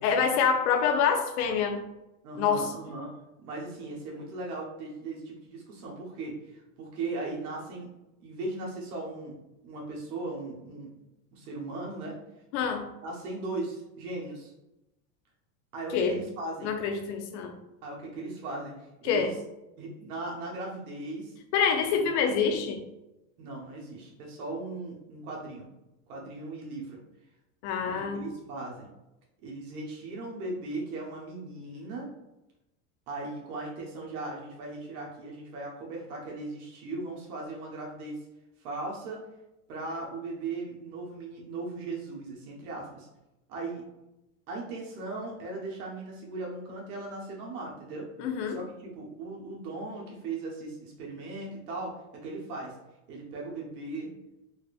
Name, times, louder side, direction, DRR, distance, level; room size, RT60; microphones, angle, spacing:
voice 1, 0.0-1.8 2.4-2.7 12.5-12.9 15.9-16.2 16.6-17.5 19.0-19.4 21.5-22.8 27.6-28.2 48.2-48.6, left 6 dB, 50° left, 5 dB, 0.6 m, -26 dB
voice 2, 2.2-3.1 3.4-7.9 8.2-9.4 9.6-10.9 11.3-12.2 13.0-14.5 15.7-16.7 17.8-19.4 19.8-21.3 21.9-22.0 23.4-25.7 26.1-27.0 27.8-28.9 29.4-32.1 33.1-38.2 38.6-39.2 39.7-43.1 43.5-43.8 44.5-48.1 48.5-52.8 53.1-54.1, right 2 dB, 80° right, -2 dB, 1.1 m, -38 dB
4.1 x 2.4 x 2.4 m, 0.93 s
supercardioid pair, 145°, 44 cm